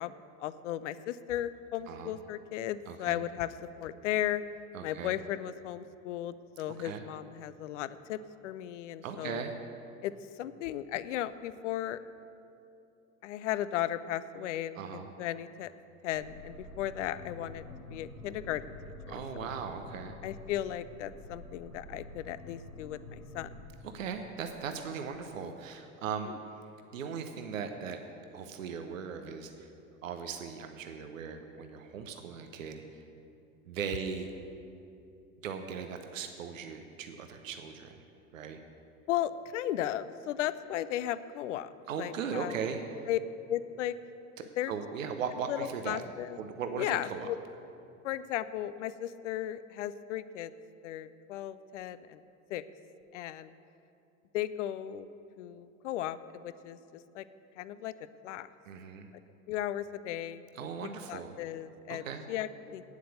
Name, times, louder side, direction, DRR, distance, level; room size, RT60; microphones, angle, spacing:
voice 1, 0.0-3.5 3.8-4.4 4.8-9.4 10.0-10.1 10.4-12.0 13.2-15.7 16.0-17.6 17.9-18.7 19.1-19.5 20.2-23.5 26.3-26.4 39.1-41.7 42.0-42.5 43.1-43.2 43.5-44.0 44.6-44.7 45.5-46.4 46.8-47.4 48.0-50.5 50.8-52.2 52.5-52.6 53.1-53.5 54.3-55.1 55.4-56.2 56.4-57.2 57.6-57.9 58.2-58.5 59.5-60.4 61.1-62.8, left 12 dB, 60° left, 15 dB, 0.6 m, -35 dB
voice 2, 1.9-2.2 2.9-3.2 4.7-5.2 6.8-7.0 9.0-9.6 14.8-15.1 19.1-20.1 23.8-26.3 26.9-28.0 28.3-29.7 30.0-33.0 33.6-34.3 35.4-37.9 38.3-38.6 41.9-42.8 44.7-46.0 46.4-47.3 58.7-59.1 60.5-61.4 61.9-62.3, right 6 dB, 70° right, 6 dB, 0.8 m, -38 dB
sound 1, 16.1-25.3, left 2 dB, 90° left, 1.1 m, -49 dB
9.3 x 8.3 x 8.0 m, 2.7 s
figure-of-eight pair, 75°, 41 cm